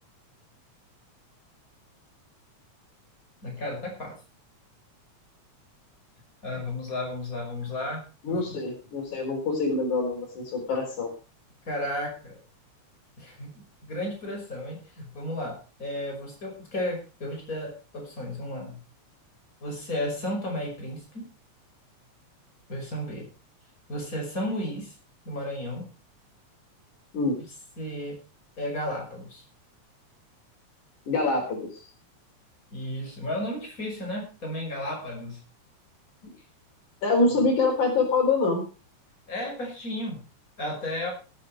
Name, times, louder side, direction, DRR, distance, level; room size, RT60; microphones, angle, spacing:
voice 1, 3.4-4.2 6.4-8.0 8.3-8.4 11.7-12.4 13.2-18.8 19.6-21.3 22.7-23.3 23.9-24.9 25.2-25.9 27.8-28.2 28.6-29.4 32.7-35.4 39.3-40.2 40.6-41.1, left 1 dB, 25° left, 0 dB, 6.1 m, -33 dB
voice 2, 8.2-11.1 27.1-27.4 31.1-31.8 36.2-36.3 37.0-38.6, left 3 dB, 85° left, 2 dB, 5.4 m, -25 dB
18.0 x 8.9 x 4.7 m, 0.33 s
omnidirectional pair, 3.4 m